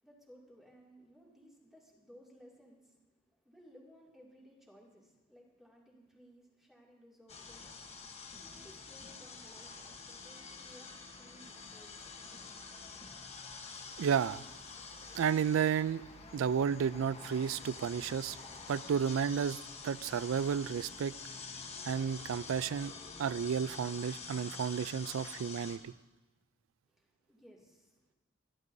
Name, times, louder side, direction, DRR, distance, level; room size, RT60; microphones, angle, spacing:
voice 1, 0.0-7.8 8.1-12.1 26.9-28.2, equal, ahead, 2.4 m, -60 dB
sound 1, 7.3-25.8, left 4 dB, 35° left, 1.1 m, -48 dB
voice 2, 14.0-14.4 15.1-16.0 16.3-18.4 18.7-21.1 21.8-22.9 23.2-25.9, right 7 dB, 85° right, 0.3 m, -32 dB
23.5 x 11.0 x 2.7 m
head